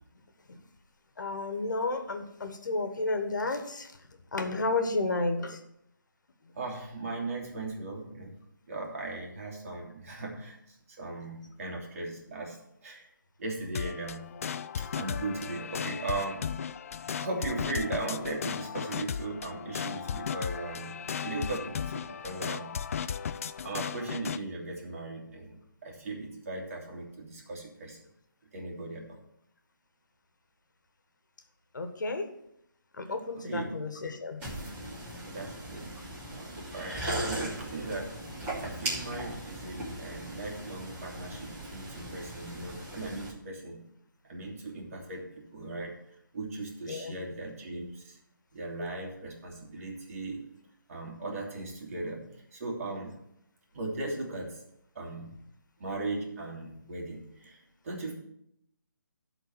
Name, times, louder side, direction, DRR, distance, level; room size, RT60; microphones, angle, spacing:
voice 1, 1.2-3.9 4.3-5.6 31.7-32.3 33.0-34.4 46.9-47.2, left 3 dB, 65° left, 6 dB, 1.5 m, -31 dB
voice 2, 6.6-8.3 8.7-13.1 13.4-14.3 14.9-16.5 17.2-23.0 23.6-28.0 28.5-29.2 33.4-33.7 35.3-35.9 36.3-38.1 38.6-43.8 44.2-45.9 46.3-48.2 48.5-50.4 50.9-53.1 53.7-54.6 54.9-55.4 55.8-57.6 57.8-58.1, right 2 dB, 45° right, -1 dB, 2.6 m, -38 dB
sound 1, 13.7-24.4, left 7 dB, 45° left, 0.4 m, -36 dB
sound 2, 34.4-43.3, right 1 dB, 15° right, 2.4 m, -38 dB
11.5 x 4.0 x 7.7 m, 0.76 s
figure-of-eight pair, 150°, 11 cm